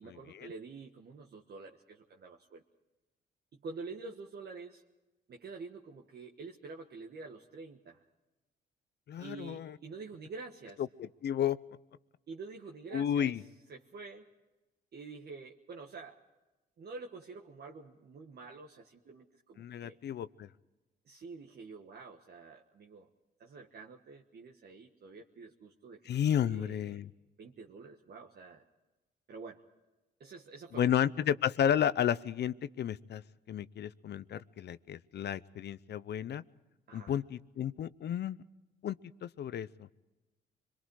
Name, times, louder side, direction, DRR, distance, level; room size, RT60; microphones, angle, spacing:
voice 1, 0.0-2.6 3.5-4.8 5.3-8.0 9.2-10.8 12.3-13.4 13.7-14.3 14.9-16.2 16.8-20.0 21.1-23.1 23.4-26.1 26.3-27.1 27.4-28.6 29.3-29.6 30.2-31.0 36.9-37.2, right 4 dB, 55° right, 1 dB, 1.5 m, -47 dB
voice 2, 9.1-9.8 11.0-11.6 12.9-13.4 19.6-20.5 26.1-27.1 30.7-33.2 33.5-36.4 36.9-38.4 38.8-39.0 39.2-39.9, left 9 dB, 60° left, 17 dB, 0.7 m, -32 dB
25.0 x 22.5 x 4.8 m, 1.1 s
cardioid pair, 90°, 20 cm